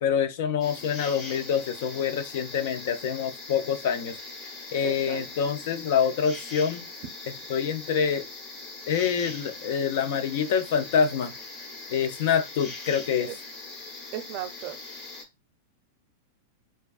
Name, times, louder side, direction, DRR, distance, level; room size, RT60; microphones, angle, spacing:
voice 1, 0.0-4.2 4.7-6.9 7.5-8.3 8.9-11.3 11.9-13.3, left 7 dB, 65° left, 0.4 m, -26 dB
sound 1, 0.6-15.2, left 3 dB, 30° left, 1.0 m, -41 dB
voice 2, 4.8-5.3 13.2-13.4 14.1-14.7, right 12 dB, 50° right, 0.5 m, -35 dB
2.4 x 2.2 x 2.3 m
hypercardioid pair, 115°, 0 cm